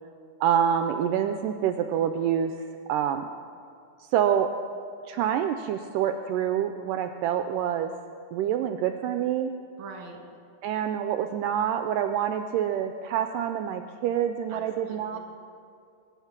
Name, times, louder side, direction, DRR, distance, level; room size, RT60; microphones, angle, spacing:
voice 1, 0.4-3.3 4.0-4.5 5.1-7.9 8.3-9.5 10.6-15.2, right 9 dB, 80° right, 7 dB, 2.1 m, -27 dB
voice 2, 9.8-10.2 14.5-15.2, right 4 dB, 45° right, 1 dB, 2.5 m, -43 dB
22.5 x 10.0 x 5.9 m, 2.4 s
omnidirectional pair, 3.9 m